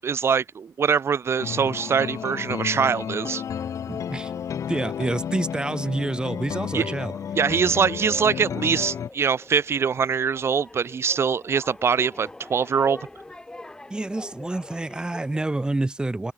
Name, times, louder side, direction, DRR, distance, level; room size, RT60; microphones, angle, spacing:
voice 1, 0.0-3.4 6.7-6.9 7.4-13.0, right 6 dB, 50° right, 0.5 m, -23 dB
sound 1, 1.2-15.4, left 2 dB, 15° left, 1.0 m, -46 dB
sound 2, 1.4-9.1, left 8 dB, 70° left, 1.3 m, -32 dB
voice 2, 3.9-4.3 4.7-7.1 13.9-16.3, right 2 dB, 15° right, 0.7 m, -28 dB
open air
cardioid pair, 100°, 6 cm